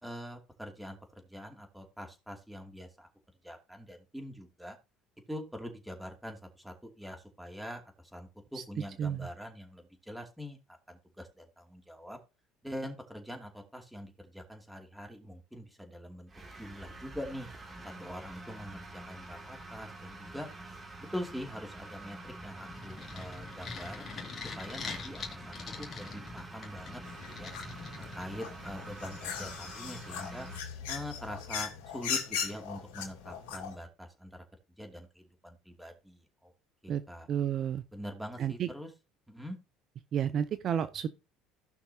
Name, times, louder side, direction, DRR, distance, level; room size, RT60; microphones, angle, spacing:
voice 1, 0.0-3.1 3.4-4.8 5.3-10.6 10.9-12.2 12.6-16.3 16.6-17.5 17.8-20.5 21.1-24.0 24.6-27.0 27.3-27.5 28.0-30.5 30.9-34.4 34.8-36.5 36.8-37.3 37.9-38.9 39.3-39.6, equal, ahead, 2.6 m, -44 dB
voice 2, 9.0-9.3 36.9-37.0 37.3-37.8 38.4-38.7 40.1-41.1, right 9 dB, 50° right, 0.6 m, -31 dB
sound 1, 16.3-30.6, right 2 dB, 30° right, 2.6 m, -47 dB
sound 2, 22.3-28.7, left 5 dB, 35° left, 2.3 m, -44 dB
sound 3, 27.0-33.8, left 7 dB, 75° left, 2.5 m, -39 dB
16.0 x 5.8 x 2.8 m
hypercardioid pair, 75°, 0 cm